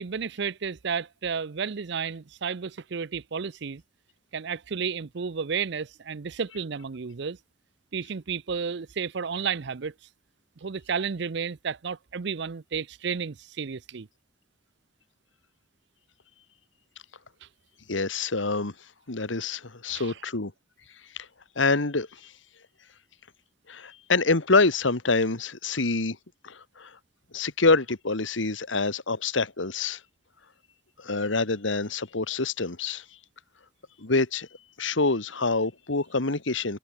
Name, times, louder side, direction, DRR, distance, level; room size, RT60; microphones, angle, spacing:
voice 1, 0.0-3.8 4.3-7.4 7.9-9.9 10.6-14.1 17.4-17.5 19.9-20.1, right 6 dB, 60° right, 0.6 m, -32 dB
voice 2, 17.9-18.7 19.1-20.5 21.2-21.3 21.5-22.3 23.7-26.2 26.4-27.0 27.3-30.0 31.0-33.0 34.0-34.5 34.8-36.8, left 3 dB, 80° left, 1.8 m, -26 dB
head